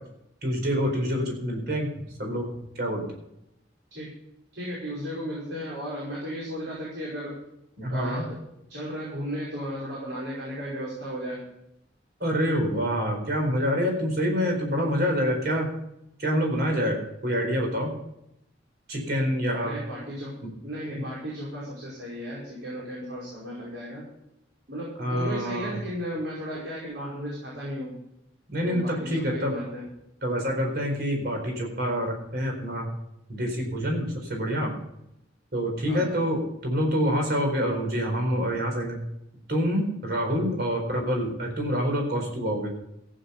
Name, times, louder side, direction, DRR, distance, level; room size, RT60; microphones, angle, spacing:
voice 1, 0.4-1.9 2.2-2.5 2.8-3.0 7.8-8.2 12.2-15.8 16.2-17.0 17.2-17.9 18.9-19.7 20.4-20.5 21.0-21.1 25.0-25.7 28.5-29.5 30.2-32.9 33.3-34.7 35.5-39.0 39.5-42.7, equal, 55° right, 2 dB, 4.4 m, -26 dB
voice 2, 4.5-7.4 7.9-8.4 8.7-11.5 19.6-20.4 20.6-24.1 24.7-28.0 28.6-29.8 35.9-36.1, equal, 70° right, -6 dB, 5.5 m, -35 dB
14.5 x 9.8 x 5.6 m, 0.82 s
head